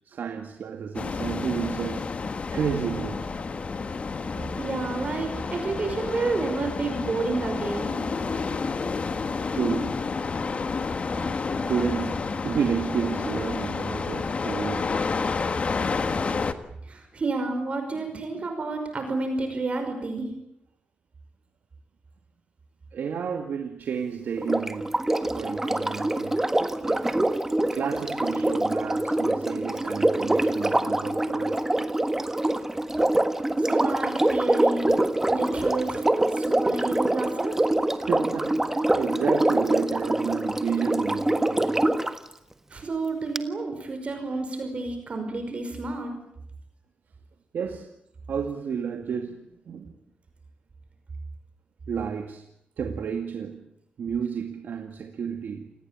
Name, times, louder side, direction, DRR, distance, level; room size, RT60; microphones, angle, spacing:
voice 1, 0.1-3.3 9.5-10.1 11.7-14.9 17.9-18.0 18.3-18.4 22.9-26.5 26.8-27.1 27.7-31.6 37.9-41.8 47.5-47.9 48.3-50.0 51.9-52.4 52.8-53.7 54.0-55.7, right 7 dB, 75° right, 5 dB, 2.2 m, -31 dB
sound 1, 0.9-16.5, left 4 dB, 40° left, 1.6 m, -30 dB
voice 2, 4.6-8.0 16.9-20.3 33.6-34.9 35.3-36.0 36.3-37.6 42.7-46.1, right 3 dB, 40° right, 6 dB, 5.5 m, -30 dB
Sink (filling or washing), 24.4-42.2 43.3-43.4, right 1 dB, 10° right, 1.5 m, -25 dB
28.5 x 19.0 x 8.9 m, 0.78 s
wide cardioid pair, 140°, 3 cm